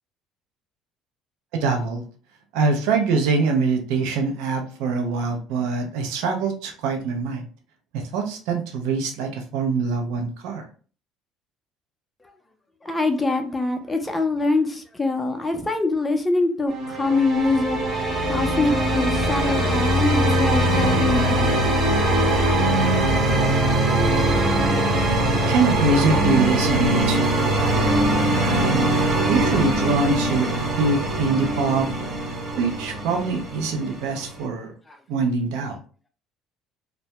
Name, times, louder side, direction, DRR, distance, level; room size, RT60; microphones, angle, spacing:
voice 1, 1.6-2.0 2.5-7.5 7.9-10.6 25.5-27.8 28.4-28.9 29.3-31.9 32.6-34.7 35.1-35.8, right 4 dB, 85° right, 0.5 m, -24 dB
voice 2, 12.8-17.8 18.3-21.8 34.9-35.0, left 3 dB, 15° left, 0.5 m, -24 dB
sound 1, 16.7-34.4, right 1 dB, 45° right, 0.9 m, -21 dB
2.2 x 2.0 x 2.8 m
cardioid pair, 105°, 0 cm